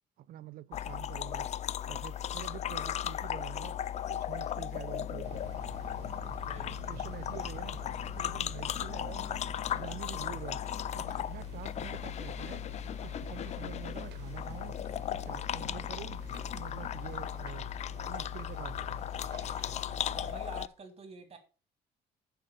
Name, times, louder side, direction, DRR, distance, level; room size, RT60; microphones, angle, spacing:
voice 1, 0.2-1.5 1.8-3.8 4.1-5.4 6.1-6.3 6.9-7.8 8.1-9.4 9.7-10.6 10.9-12.7 13.0-14.8 15.1-16.2 16.5-17.7 18.0-19.0, right 13 dB, 60° right, 0.5 m, -46 dB
sound 1, 0.7-20.7, left 10 dB, 40° left, 0.4 m, -37 dB
sound 2, 5.2-20.3, right 9 dB, 85° right, 1.4 m, -50 dB
voice 2, 6.4-6.7 20.1-21.4, right 4 dB, 35° right, 3.0 m, -47 dB
7.4 x 5.8 x 6.5 m
cardioid pair, 110°, 17 cm